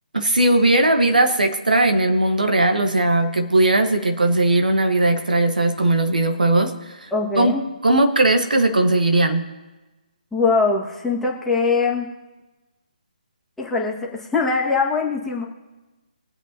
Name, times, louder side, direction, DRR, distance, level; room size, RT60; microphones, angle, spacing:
voice 1, 0.1-7.1 7.4-7.6 7.8-9.4, right 2 dB, 75° right, 5 dB, 1.4 m, -18 dB
voice 2, 7.1-7.6 10.3-12.1 13.6-15.4, left 4 dB, 5° left, -4 dB, 1.8 m, -22 dB
23.5 x 8.0 x 2.9 m, 1.2 s
figure-of-eight pair, 140°, 4 cm